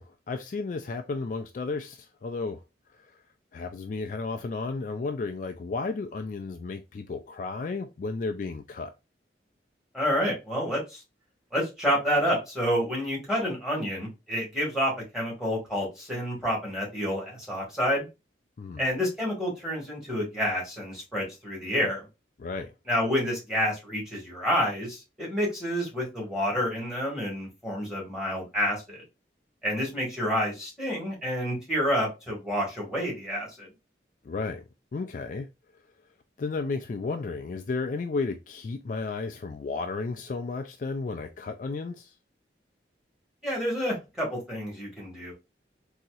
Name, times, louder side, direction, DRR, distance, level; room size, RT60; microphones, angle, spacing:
voice 1, 0.0-2.6 3.5-8.9 18.6-18.8 22.4-22.7 34.2-34.6 34.9-35.5 36.4-42.1, left 3 dB, 45° left, 0.3 m, -33 dB
voice 2, 9.9-11.0 11.5-18.1 18.8-22.0 22.9-29.0 29.6-33.7 43.4-45.3, equal, 5° right, 1.6 m, -29 dB
4.0 x 2.8 x 2.3 m
head